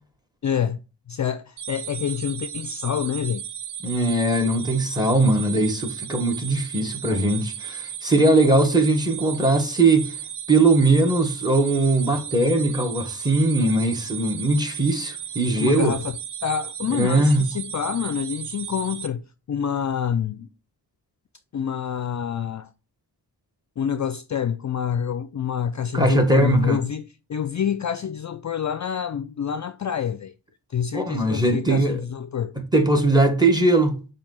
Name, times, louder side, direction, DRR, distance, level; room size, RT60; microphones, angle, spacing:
voice 1, 0.4-0.8 1.1-3.4 15.6-16.1 16.4-19.2 19.5-20.5 21.5-22.7 23.8-27.0 27.3-30.3 30.7-32.5, left 8 dB, 45° left, 0.4 m, -27 dB
sound 1, 1.6-19.1, right 9 dB, 65° right, 0.7 m, -35 dB
voice 2, 3.8-10.2 10.5-16.0 16.9-17.4 25.9-26.8 30.9-32.0 32.7-34.0, right 2 dB, 10° right, 1.6 m, -20 dB
7.0 x 2.8 x 5.5 m
cardioid pair, 50°, 44 cm